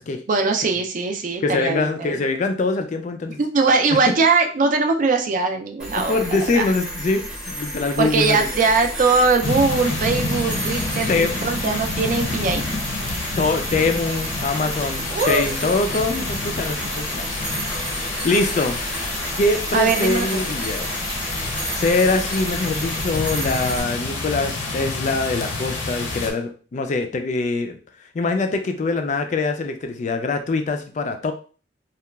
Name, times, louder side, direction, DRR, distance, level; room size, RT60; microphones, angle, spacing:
voice 1, 0.3-2.2 3.4-6.2 6.6-6.7 8.0-12.6 15.1-15.4 19.7-20.4, right 4 dB, 45° right, 5 dB, 0.4 m, -21 dB
voice 2, 1.4-3.4 5.9-8.5 11.1-11.4 12.5-12.6 13.4-17.3 17.6-21.0 21.7-27.8 28.1-31.3, left 3 dB, 40° left, 6 dB, 0.3 m, -23 dB
sound 1, 5.8-23.8, right 1 dB, 5° right, 0.7 m, -31 dB
sound 2, 9.4-26.3, left 3 dB, 80° left, 0.6 m, -28 dB
2.8 x 2.3 x 2.2 m, 0.38 s
head